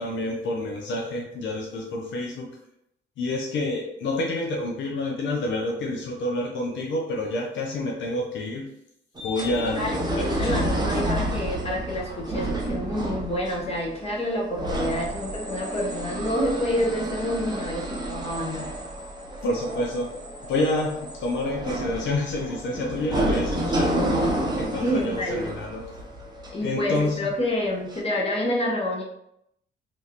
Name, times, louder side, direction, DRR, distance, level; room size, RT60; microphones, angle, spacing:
voice 1, 0.0-2.5 3.2-8.6 9.2-10.3 19.4-20.1 20.5-24.0 24.6-25.9 26.6-27.3, left 2 dB, 70° left, 0 dB, 0.6 m, -28 dB
sound 1, 9.2-27.3 27.9-28.0, right 1 dB, 20° right, 0.7 m, -30 dB
voice 2, 9.8-18.7 24.7-25.5 26.5-29.0, left 1 dB, 30° left, -2 dB, 1.0 m, -28 dB
3.1 x 2.6 x 2.9 m, 0.79 s
cardioid pair, 90°, 20 cm